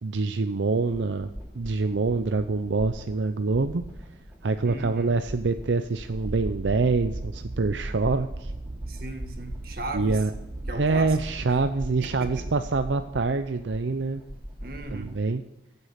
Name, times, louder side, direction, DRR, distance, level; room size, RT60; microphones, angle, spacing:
voice 1, 0.0-3.8 4.4-8.5 9.9-10.3 10.7-14.2 14.9-15.4, right 3 dB, 80° right, 9 dB, 0.6 m, -25 dB
sound 1, 0.7-15.2, equal, 10° right, 3.1 m, -42 dB
voice 2, 4.6-5.1 8.9-10.2 10.7-11.2 12.0-12.5 14.6-15.2, right 2 dB, 55° right, 5 dB, 1.9 m, -37 dB
sound 2, 6.2-12.9, right 2 dB, 35° right, 0.6 m, -37 dB
15.5 x 8.3 x 5.8 m, 1.0 s
head